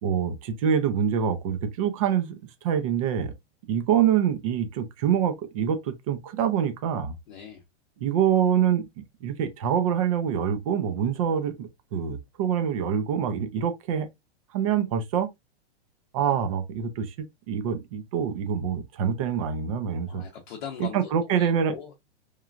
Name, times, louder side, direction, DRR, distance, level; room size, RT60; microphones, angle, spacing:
voice 1, 0.0-2.3 2.6-3.3 3.7-7.1 8.0-8.9 9.2-14.1 14.5-15.3 16.1-20.2 20.8-21.7, right 8 dB, 30° right, 0.4 m, -25 dB
voice 2, 7.3-7.6 20.1-21.9, left 8 dB, 45° left, 0.7 m, -40 dB
3.1 x 2.3 x 2.3 m
hypercardioid pair, 155°, 34 cm